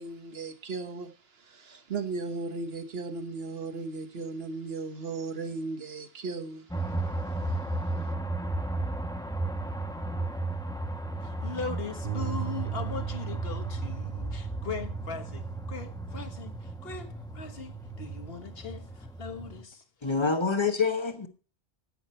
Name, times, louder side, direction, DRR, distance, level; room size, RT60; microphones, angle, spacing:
voice 1, 0.0-8.1, right 3 dB, 70° right, 1.5 m, -37 dB
sound 1, 6.7-19.6, right 2 dB, 5° left, 1.2 m, -35 dB
voice 2, 11.2-19.8, left 5 dB, 65° left, 1.6 m, -39 dB
sound 2, 12.0-18.3, right 12 dB, 50° right, 0.7 m, -38 dB
voice 3, 20.0-21.3, left 4 dB, 30° left, 1.1 m, -26 dB
11.0 x 8.8 x 4.3 m
omnidirectional pair, 1.1 m